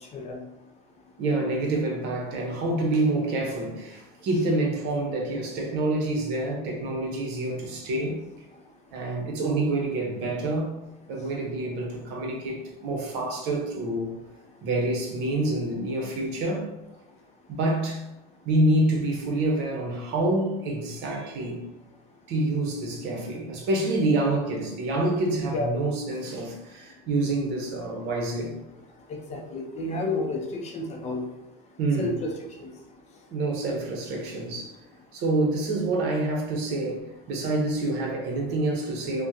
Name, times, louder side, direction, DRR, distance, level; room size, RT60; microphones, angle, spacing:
voice 1, 1.2-8.2 8.9-10.7 11.1-14.2 14.6-16.7 17.5-18.0 18.4-21.6 22.3-28.6 31.8-32.2 33.3-34.7 35.1-39.3, right 2 dB, 55° right, 0 dB, 0.9 m, -27 dB
voice 2, 29.1-31.2 32.0-32.3 32.6-32.7, left 2 dB, 30° left, 1 dB, 0.5 m, -30 dB
3.5 x 2.2 x 2.8 m, 0.97 s
supercardioid pair, 135°, 21 cm